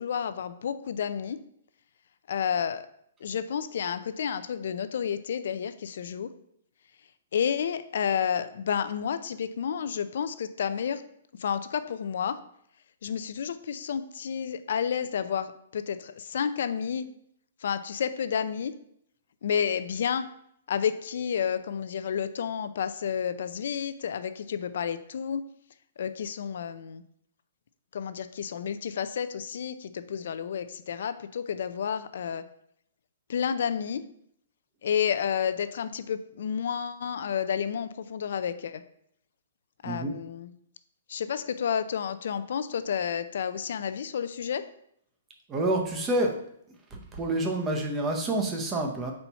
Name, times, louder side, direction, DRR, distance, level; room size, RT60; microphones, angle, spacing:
voice 1, 0.0-1.4 2.3-2.8 3.2-6.3 7.3-11.0 11.4-12.4 13.0-17.1 17.6-18.7 19.4-20.3 20.7-25.5 26.0-27.0 27.9-32.4 33.3-34.0 34.8-38.8 39.8-40.5 41.1-44.6, left 7 dB, 55° left, 12 dB, 0.5 m, -30 dB
voice 2, 39.8-40.2 45.5-46.4 46.9-49.1, right 1 dB, 10° right, 2 dB, 0.7 m, -28 dB
4.4 x 4.2 x 5.5 m, 0.71 s
hypercardioid pair, 175°, 0 cm